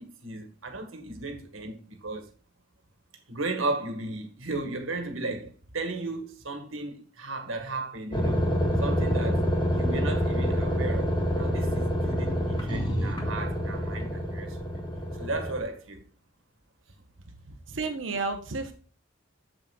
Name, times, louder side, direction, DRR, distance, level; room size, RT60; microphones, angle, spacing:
voice 1, 0.0-2.3 3.3-8.4 8.8-14.8 15.2-16.0, right 2 dB, 85° right, 1.7 m, -35 dB
sound 1, 8.1-15.6, equal, 25° left, 1.7 m, -27 dB
voice 2, 17.5-18.7, right 3 dB, 65° right, 1.1 m, -32 dB
8.1 x 7.4 x 2.4 m
head